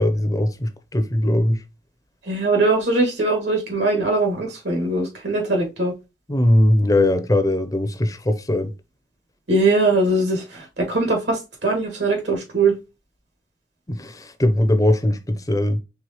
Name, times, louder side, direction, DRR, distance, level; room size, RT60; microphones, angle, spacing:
voice 1, 0.0-1.6 6.3-8.7 13.9-15.8, left 1 dB, 20° left, 0.6 m, -20 dB
voice 2, 2.3-5.9 9.5-12.8, right 2 dB, 75° right, 1.8 m, -21 dB
4.7 x 3.3 x 3.0 m
head